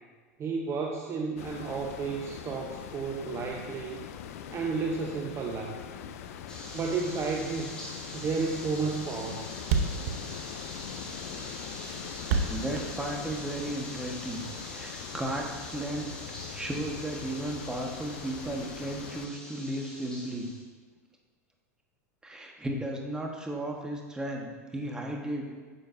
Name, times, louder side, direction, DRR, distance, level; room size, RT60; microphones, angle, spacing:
voice 1, 0.4-4.0 4.5-5.8 6.7-7.8 8.1-9.5, right 4 dB, 30° right, 1 dB, 0.8 m, -32 dB
sound 1, 1.4-19.3, left 9 dB, 70° left, 0.5 m, -42 dB
sound 2, 6.5-20.6, left 1 dB, 10° left, 2.3 m, -44 dB
Thump thud, 8.3-8.5 8.8-8.9 9.1-9.2 9.4-9.5 9.6-13.7, right 5 dB, 65° right, 0.8 m, -30 dB
voice 2, 12.5-16.1 16.5-20.5 22.2-25.4, right 1 dB, 10° right, 0 dB, 1.3 m, -35 dB
9.9 x 6.5 x 2.7 m, 1.4 s
hypercardioid pair, 100°, 8 cm